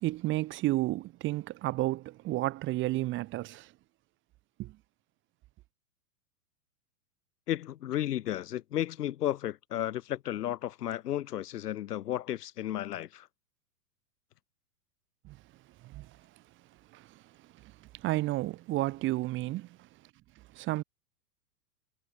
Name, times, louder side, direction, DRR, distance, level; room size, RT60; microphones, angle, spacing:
voice 1, 0.0-3.7 4.6-4.7 15.3-15.4 15.8-16.1 16.9-17.1 18.0-19.7 20.6-20.8, right 17 dB, 25° right, 0.9 m, -31 dB
voice 2, 7.5-13.3, left 12 dB, 75° left, 0.9 m, -33 dB
hypercardioid pair, 115°, 47 cm